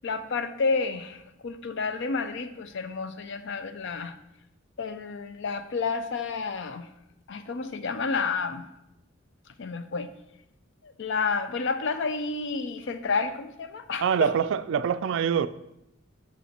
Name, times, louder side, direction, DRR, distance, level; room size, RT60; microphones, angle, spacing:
voice 1, 0.0-4.1 4.8-6.9 7.3-8.7 9.6-10.1 10.8-14.3, left 4 dB, 60° left, 10 dB, 0.5 m, -30 dB
voice 2, 14.0-15.5, right 7 dB, 60° right, 14 dB, 0.3 m, -24 dB
5.6 x 5.5 x 4.3 m, 0.84 s
head